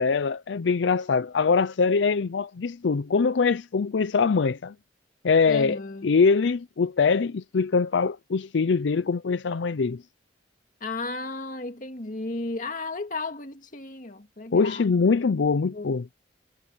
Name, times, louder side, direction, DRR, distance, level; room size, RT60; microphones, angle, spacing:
voice 1, 0.0-4.7 5.2-10.0 14.5-16.0, left 5 dB, 75° left, 0.5 m, -23 dB
voice 2, 5.5-6.1 10.8-14.9 15.7-15.9, left 3 dB, 45° left, 2.1 m, -34 dB
head